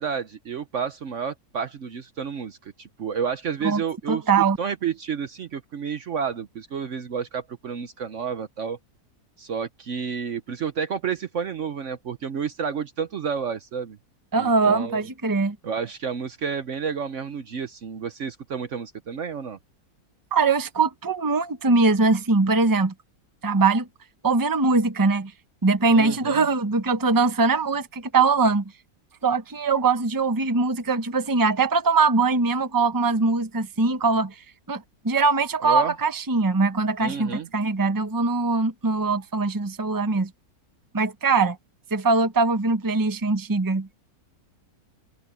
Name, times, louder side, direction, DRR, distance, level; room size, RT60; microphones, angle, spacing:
voice 1, 0.0-4.2 4.6-8.8 9.4-14.0 14.4-15.0 15.6-19.6 25.9-26.5 35.6-35.9 37.0-37.5, right 6 dB, 55° right, 1.1 m, -30 dB
voice 2, 4.1-4.6 14.3-15.6 20.3-22.9 23.4-23.9 24.2-25.3 25.6-28.6 29.2-34.3 34.7-40.3 40.9-41.6 41.9-44.0, right 4 dB, 15° right, 0.9 m, -22 dB
omnidirectional pair, 1.7 m